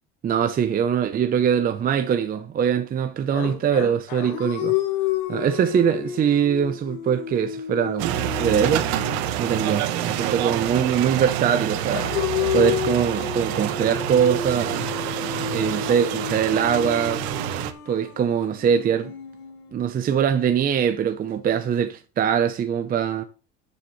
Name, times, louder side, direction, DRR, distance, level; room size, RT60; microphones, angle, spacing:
voice 1, 0.2-4.8 5.3-8.9 9.4-12.1 12.5-14.9 15.5-17.3 17.9-19.1 19.7-23.2, right 8 dB, 25° right, 0.7 m, -22 dB
sound 1, 3.3-11.4 11.9-20.0, left 11 dB, 85° left, 2.3 m, -31 dB
sound 2, 8.0-17.7, right 11 dB, 80° right, 1.2 m, -27 dB
11.0 x 7.1 x 3.2 m
cardioid pair, 135°, 33 cm